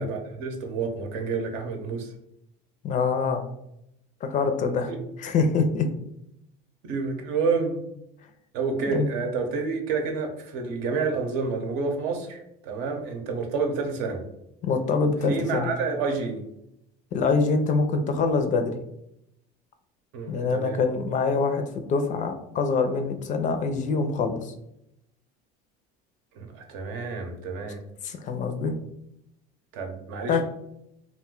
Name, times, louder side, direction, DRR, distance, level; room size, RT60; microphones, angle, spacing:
voice 1, 0.0-2.1 4.9-5.0 6.8-7.8 8.5-14.2 15.3-16.4 20.1-20.8 26.3-27.8 29.7-30.4, right 4 dB, 70° right, 3 dB, 0.7 m, -29 dB
voice 2, 2.8-3.5 4.2-4.9 5.2-5.9 8.8-9.1 14.6-15.7 17.1-18.7 20.3-24.5 28.0-28.7 30.3-30.4, left 4 dB, 40° left, 6 dB, 0.4 m, -25 dB
2.4 x 2.2 x 3.7 m, 0.80 s
supercardioid pair, 120°, 20 cm